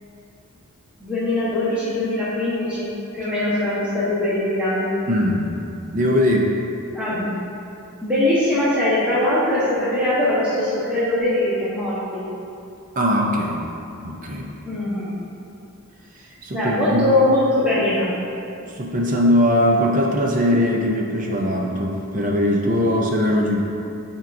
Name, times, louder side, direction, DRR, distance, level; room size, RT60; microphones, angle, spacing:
voice 1, 1.0-5.0 6.9-7.3 8.0-12.3 14.6-15.1 16.5-18.1, left 1 dB, 5° right, -11 dB, 1.1 m, -21 dB
voice 2, 5.1-5.6 5.9-6.6 13.0-13.7 14.0-14.5 16.4-17.2 18.6-23.6, equal, 35° right, -1 dB, 0.6 m, -20 dB
10.0 x 4.5 x 2.6 m, 2.7 s
head